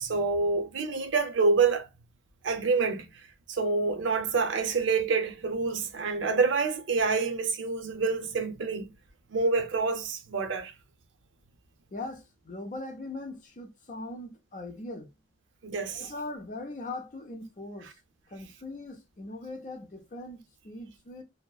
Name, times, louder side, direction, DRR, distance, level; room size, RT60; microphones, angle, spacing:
voice 1, 0.0-1.9 2.4-3.2 3.5-9.0 9.3-10.7 15.6-16.1, right 4 dB, 85° right, 0.5 m, -27 dB
voice 2, 11.9-15.1 15.9-18.0 18.3-21.2, left 2 dB, 40° left, 0.6 m, -40 dB
2.7 x 2.2 x 2.2 m
head